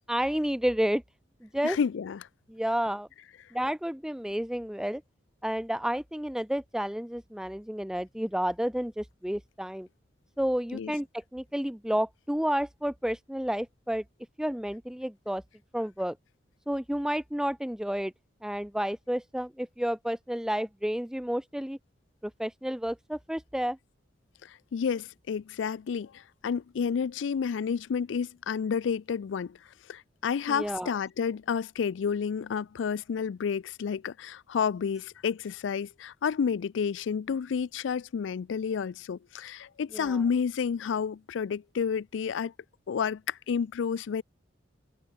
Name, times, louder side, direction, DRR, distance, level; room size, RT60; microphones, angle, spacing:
voice 1, 0.1-1.0 1.4-1.8 2.5-3.1 3.5-5.0 5.4-9.9 10.4-11.1 11.3-14.0 14.4-15.4 15.7-16.2 16.7-18.1 18.4-21.8 22.2-23.8 30.5-31.0 39.9-40.2, equal, 5° right, 0.6 m, -30 dB
voice 2, 1.6-2.3 10.7-10.9 24.7-29.6 29.9-42.5 42.9-44.2, left 6 dB, 80° left, 0.4 m, -30 dB
head